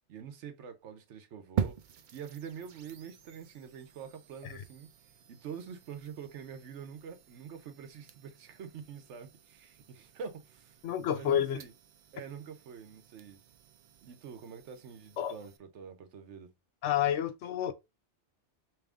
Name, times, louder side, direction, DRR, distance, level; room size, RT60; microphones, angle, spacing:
voice 1, 0.1-1.8 2.1-4.9 5.3-10.8 11.1-11.7 12.1-13.4 14.0-16.5, right 7 dB, 80° right, 1.0 m, -46 dB
sound 1, 1.6-15.6, right 8 dB, 60° right, 0.5 m, -44 dB
voice 2, 10.8-11.6 15.2-15.4 16.8-17.7, left 10 dB, 85° left, 0.9 m, -30 dB
3.5 x 3.1 x 3.6 m
omnidirectional pair, 1.2 m